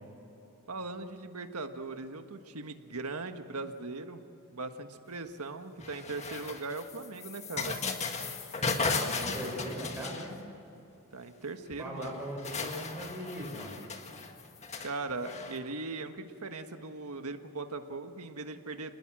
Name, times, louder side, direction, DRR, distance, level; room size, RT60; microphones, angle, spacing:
voice 1, 0.7-4.2 4.5-7.8 11.1-12.2 14.8-18.9, right 3 dB, 85° right, 7 dB, 1.5 m, -39 dB
sound 1, 5.8-10.6 11.7-11.8 12.0-15.6, left 4 dB, 30° left, 1.7 m, -36 dB
voice 2, 8.7-10.3 11.8-13.8, equal, 10° right, -3 dB, 6.0 m, -39 dB
27.5 x 20.0 x 7.7 m, 3.0 s
head